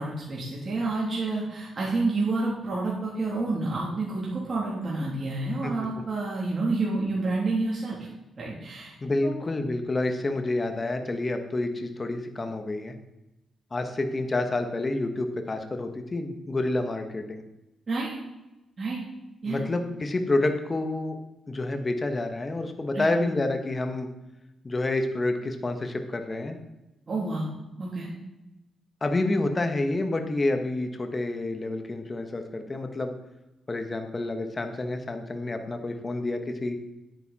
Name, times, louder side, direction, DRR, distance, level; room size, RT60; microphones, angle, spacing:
voice 1, 0.0-8.0 8.4-8.9 9.2-9.3 17.9-18.1 18.8-19.0 19.4-19.6 22.9-23.1 27.1-27.5 27.8-28.1, right 3 dB, 40° right, -5 dB, 3.0 m, -29 dB
voice 2, 9.0-12.9 13.7-17.4 19.4-21.2 21.5-24.1 24.6-26.6 29.0-33.1 33.7-36.8, left 2 dB, 30° left, 6 dB, 1.3 m, -28 dB
9.8 x 9.3 x 4.2 m, 0.96 s
cardioid pair, 85°, 0 cm